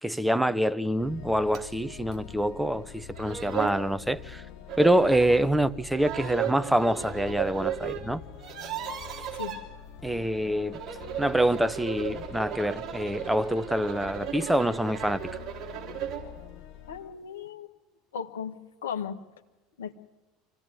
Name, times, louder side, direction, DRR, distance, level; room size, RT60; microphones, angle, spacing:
voice 1, 0.0-4.4 4.8-8.2 10.0-10.8 11.2-15.2, right 1 dB, 5° right, 0.9 m, -26 dB
sound 1, 1.0-17.0, left 9 dB, 55° left, 5.7 m, -45 dB
sound 2, 1.5-1.7 2.1-2.2 2.9-3.0 3.2-3.8 4.7-5.4 5.9-8.0 8.3-9.6 10.6-16.3, right 10 dB, 40° right, 4.2 m, -35 dB
voice 2, 16.9-17.7 18.1-18.6 18.8-19.2 19.8-19.9, left 7 dB, 75° left, 1.5 m, -36 dB
25.0 x 16.0 x 9.4 m
figure-of-eight pair, 70°, 0 cm